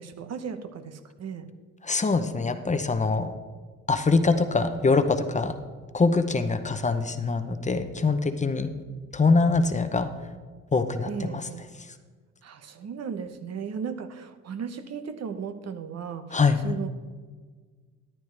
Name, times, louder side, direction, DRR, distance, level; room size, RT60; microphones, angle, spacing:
voice 1, 0.0-1.5 11.0-11.7 12.4-16.9, right 6 dB, 60° right, 9 dB, 1.0 m, -36 dB
voice 2, 1.8-3.3 3.9-5.5 5.9-8.7 9.1-10.1 10.7-11.4 16.3-16.8, left 4 dB, 25° left, 8 dB, 0.8 m, -23 dB
13.0 x 10.5 x 3.4 m, 1.5 s
cardioid pair, 90°, 30 cm